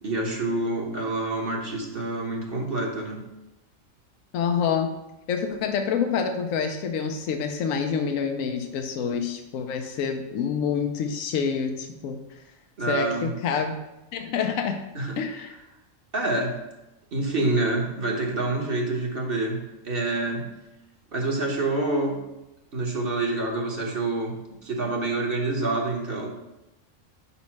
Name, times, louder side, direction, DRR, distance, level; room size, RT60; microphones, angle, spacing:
voice 1, 0.0-3.2 12.8-13.3 14.9-15.2 16.1-16.6 17.1-20.5 21.1-22.2 22.7-24.4 24.6-26.3, right 2 dB, 45° right, 0 dB, 1.3 m, -27 dB
voice 2, 4.3-4.9 5.3-12.2 12.9-13.8 14.1-14.8 15.2-15.5, left 6 dB, 85° left, 5 dB, 1.1 m, -27 dB
5.2 x 4.2 x 5.8 m, 0.94 s
omnidirectional pair, 1.3 m